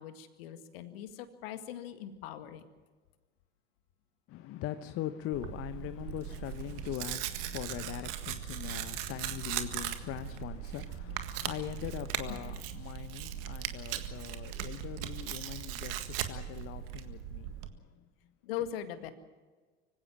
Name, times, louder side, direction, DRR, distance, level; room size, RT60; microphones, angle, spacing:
voice 1, 0.0-2.7 12.3-12.4 18.4-19.1, left 10 dB, 65° left, 2.0 m, -40 dB
voice 2, 4.3-17.5, left 13 dB, 45° left, 0.9 m, -41 dB
Tearing, 5.3-17.7, right 11 dB, 65° right, 1.8 m, -39 dB
25.0 x 16.5 x 7.5 m
figure-of-eight pair, 70°, 31 cm